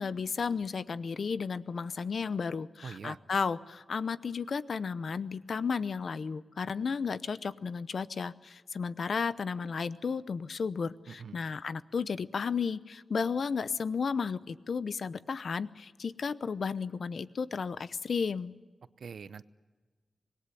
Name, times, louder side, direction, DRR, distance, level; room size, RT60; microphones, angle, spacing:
voice 1, 0.0-18.5, left 5 dB, 60° left, 15 dB, 0.8 m, -33 dB
voice 2, 2.8-3.2 11.1-11.3 19.0-19.4, right 6 dB, 70° right, 15 dB, 0.7 m, -43 dB
26.0 x 20.0 x 8.3 m, 1.4 s
wide cardioid pair, 170°, 0 cm